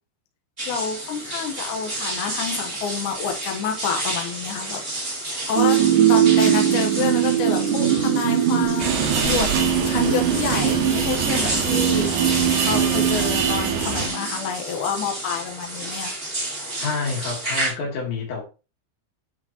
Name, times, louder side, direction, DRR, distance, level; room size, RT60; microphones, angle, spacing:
sound 1, 0.6-17.7, right 1 dB, 15° right, 2.3 m, -31 dB
voice 1, 0.7-4.8 5.4-5.8 6.1-9.5 9.9-12.1 12.4-16.2, left 6 dB, 65° left, 2.0 m, -28 dB
sound 2, 5.5-14.3, right 10 dB, 90° right, 3.6 m, -21 dB
sound 3, 8.8-14.1, right 6 dB, 70° right, 3.3 m, -26 dB
voice 2, 16.8-18.4, left 4 dB, 85° left, 5.4 m, -28 dB
10.5 x 5.0 x 2.9 m
omnidirectional pair, 5.0 m